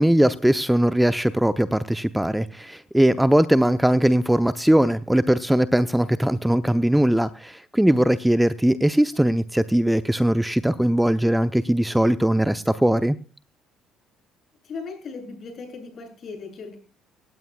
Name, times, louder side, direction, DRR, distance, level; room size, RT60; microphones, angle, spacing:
voice 1, 0.0-13.2, right 1 dB, 5° right, 13 dB, 0.7 m, -20 dB
voice 2, 14.6-16.8, left 4 dB, 45° left, 3 dB, 7.7 m, -37 dB
18.0 x 16.5 x 2.4 m, 0.35 s
figure-of-eight pair, 50°, 0 cm